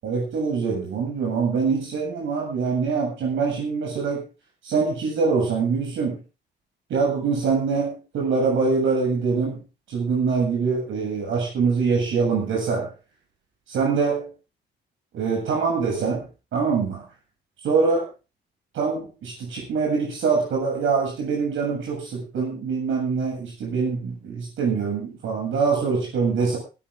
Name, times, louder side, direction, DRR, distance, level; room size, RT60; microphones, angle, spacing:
voice 1, 0.0-4.2 4.6-6.2 6.9-9.6 9.9-12.9 13.7-14.3 15.1-17.1 17.6-18.0 18.7-26.6, right 5 dB, 75° right, 0 dB, 7.5 m, -24 dB
19.0 x 12.5 x 3.7 m, 0.32 s
cardioid pair, 90°, 20 cm